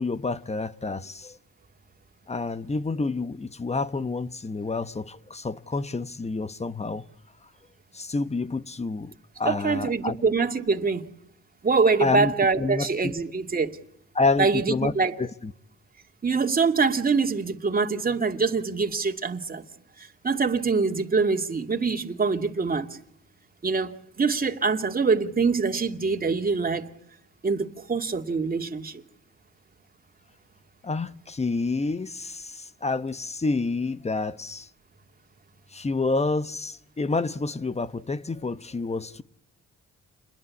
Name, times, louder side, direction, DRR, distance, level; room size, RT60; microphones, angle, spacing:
voice 1, 0.0-1.4 2.3-7.0 7.9-10.2 12.0-13.1 14.1-14.9 15.2-15.5 30.8-34.7 35.7-39.2, left 3 dB, 20° left, 1.1 m, -28 dB
voice 2, 9.4-11.0 11.6-13.8 14.4-15.1 16.2-19.6 20.0-23.0 23.6-26.9 27.4-29.0, right 4 dB, 30° right, 2.5 m, -24 dB
29.5 x 21.5 x 8.6 m
cardioid pair, 90°, 30 cm